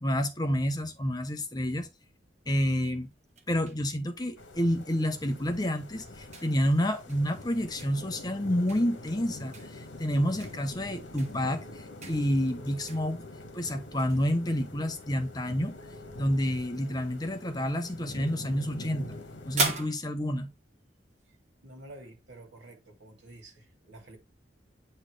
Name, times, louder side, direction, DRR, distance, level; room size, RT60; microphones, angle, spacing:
voice 1, 0.0-1.9 2.5-3.1 3.5-13.2 13.5-15.8 16.2-19.2 19.4-20.5, equal, 20° left, 0.8 m, -29 dB
sound 1, 2.7-21.5, right 4 dB, 35° right, 1.3 m, -42 dB
sound 2, 4.4-19.9, left 1 dB, 75° left, 1.5 m, -45 dB
voice 2, 21.6-24.2, right 2 dB, 65° right, 2.7 m, -49 dB
8.8 x 4.4 x 3.3 m
head